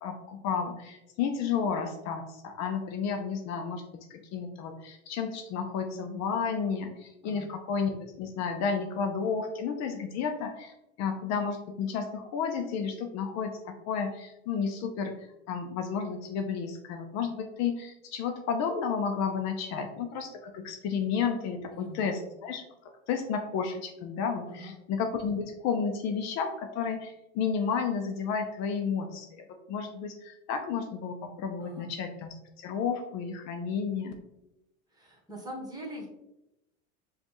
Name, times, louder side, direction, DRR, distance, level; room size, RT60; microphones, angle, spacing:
voice 1, 0.0-3.8 4.1-15.1 15.5-22.6 23.1-32.3 32.6-34.1, left 6 dB, 55° left, 5 dB, 0.5 m, -32 dB
voice 2, 21.7-22.0 24.5-24.7 31.6-31.9 34.9-36.1, equal, 10° right, -1 dB, 1.4 m, -42 dB
5.0 x 2.4 x 2.9 m, 0.90 s
hypercardioid pair, 85°, 33 cm